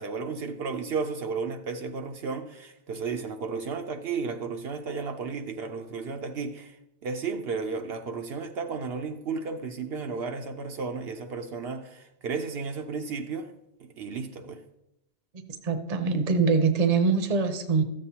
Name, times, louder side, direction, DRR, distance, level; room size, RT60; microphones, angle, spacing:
voice 1, 0.0-6.8 7.0-13.5 14.0-14.6, right 5 dB, 70° right, 0.9 m, -33 dB
voice 2, 15.6-17.8, right 4 dB, 40° right, 0.8 m, -23 dB
13.5 x 7.5 x 2.8 m
omnidirectional pair, 1.1 m